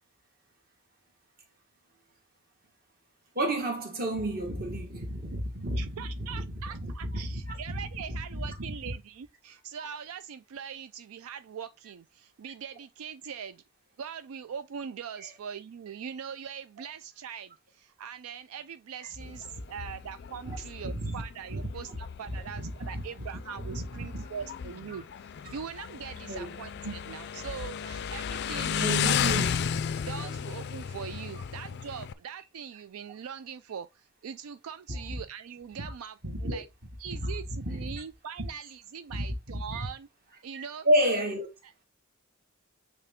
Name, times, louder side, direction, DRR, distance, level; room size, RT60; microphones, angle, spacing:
voice 1, 3.3-8.9 15.2-15.3 16.8-16.9 20.5-20.6 20.8-21.2 21.5-21.6 21.9-22.0 22.3-23.0 23.6-24.2 26.3-26.6 26.8-26.9 28.8-29.5 34.9-35.0 35.8-35.9 36.2-36.6 37.2-38.0 39.1-39.9 40.5-41.5, equal, 40° right, 1.7 m, -32 dB
voice 2, 5.7-13.6 14.0-29.2 29.4-29.5 30.1-36.7 37.0-40.1 40.4-40.9 41.6-41.8, right 7 dB, 75° right, 0.4 m, -42 dB
Motorcycle, 19.2-32.1, left 8 dB, 50° left, 0.4 m, -34 dB
7.9 x 3.4 x 3.6 m
head